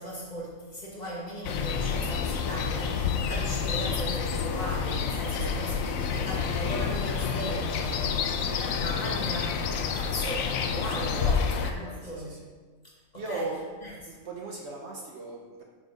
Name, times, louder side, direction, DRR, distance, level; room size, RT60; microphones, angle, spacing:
voice 1, 0.0-5.7 6.1-11.3 11.6-12.4 13.1-13.5 13.8-14.2, equal, 30° left, -4 dB, 1.3 m, -37 dB
sound 1, 1.4-11.7, left 6 dB, 75° left, 1.0 m, -29 dB
voice 2, 5.8-6.3 10.9-12.5 13.1-13.6 14.1-15.6, right 2 dB, 55° right, -1 dB, 1.1 m, -39 dB
5.9 x 4.6 x 5.2 m, 1.4 s
omnidirectional pair, 1.5 m